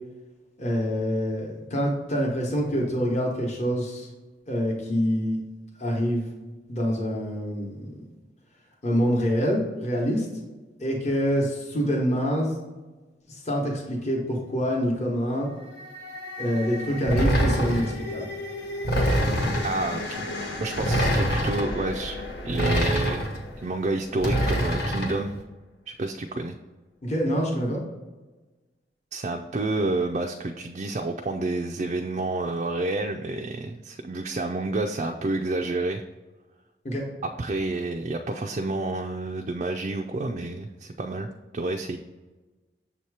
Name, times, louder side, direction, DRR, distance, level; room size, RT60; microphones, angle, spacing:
voice 1, 0.6-4.1 4.5-5.4 5.8-6.3 6.7-7.9 8.8-10.3 10.8-12.5 13.3-15.5 16.4-18.3 27.0-27.8 36.8-37.0, equal, 40° left, -2 dB, 1.0 m, -26 dB
sound 1, 15.4-24.7, left 2 dB, 75° left, 0.9 m, -36 dB
sound 2, 17.1-17.9 18.8-19.8 20.8-21.7 22.5-23.4 24.2-25.2, equal, 60° left, 1.2 m, -24 dB
voice 2, 19.6-20.3 20.6-22.2 22.4-23.3 23.6-25.4 25.9-26.6 29.1-36.0 37.4-42.0, right 2 dB, 40° right, 3 dB, 0.3 m, -29 dB
7.1 x 2.9 x 4.7 m, 1.2 s
head